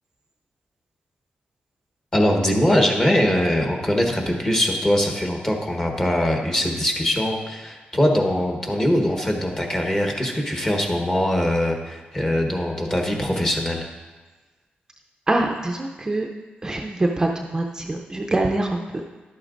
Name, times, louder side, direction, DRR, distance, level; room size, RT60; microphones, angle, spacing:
voice 1, 2.1-13.8, left 1 dB, 20° left, 1 dB, 1.2 m, -22 dB
voice 2, 15.3-16.3 16.6-19.0, right 2 dB, 20° right, 1 dB, 0.5 m, -24 dB
11.5 x 8.4 x 2.5 m, 1.3 s
wide cardioid pair, 130°, 3 cm